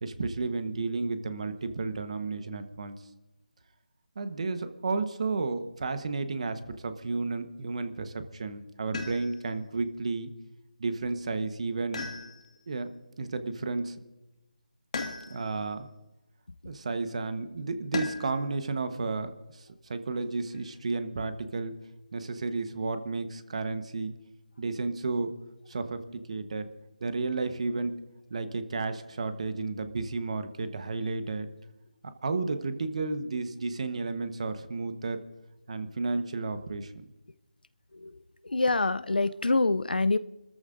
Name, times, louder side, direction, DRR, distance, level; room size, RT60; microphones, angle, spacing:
voice 1, 0.0-3.0 4.2-10.3 10.8-12.1 12.7-12.9 13.2-14.0 15.3-15.9 16.6-21.8 22.1-24.1 24.6-25.3 25.7-26.7 27.0-28.0 28.3-31.5 32.0-35.2 35.7-37.1, right 3 dB, 45° right, 9 dB, 1.2 m, -32 dB
sound 1, 8.9-9.6 11.9-12.7 14.9-15.6 17.9-18.5 20.1-20.8, left 4 dB, 45° left, 1.9 m, -37 dB
voice 2, 38.4-40.2, left 3 dB, 85° left, 15 dB, 0.5 m, -25 dB
28.0 x 14.0 x 2.6 m, 1.0 s
figure-of-eight pair, 165°, 5 cm